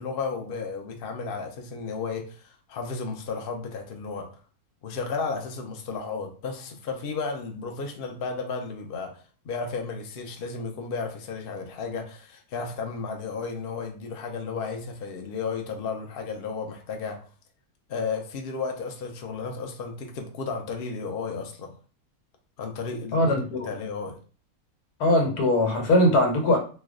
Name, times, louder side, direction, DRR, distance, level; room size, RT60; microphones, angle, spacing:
voice 1, 0.0-4.3 4.8-17.2 17.9-21.7 22.6-24.2, left 4 dB, 60° left, 0.6 m, -33 dB
voice 2, 23.1-23.7 25.0-26.6, left 1 dB, 80° left, 1.4 m, -21 dB
3.1 x 2.2 x 3.6 m
omnidirectional pair, 1.6 m